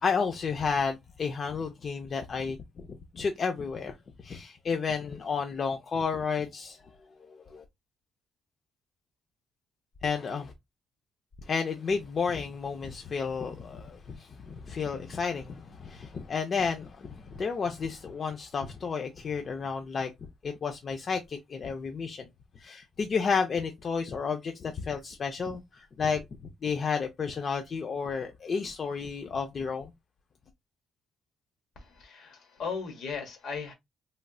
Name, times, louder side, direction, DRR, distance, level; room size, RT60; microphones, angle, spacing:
voice 1, 0.0-3.9 4.2-6.8 7.3-7.6 10.0-10.5 11.4-20.1 20.4-22.3 22.6-26.2 26.6-29.9, left 5 dB, 45° left, 0.4 m, -32 dB
voice 2, 31.8-33.7, left 5 dB, 75° left, 1.1 m, -37 dB
3.2 x 2.6 x 2.2 m
cardioid pair, 90°, 0 cm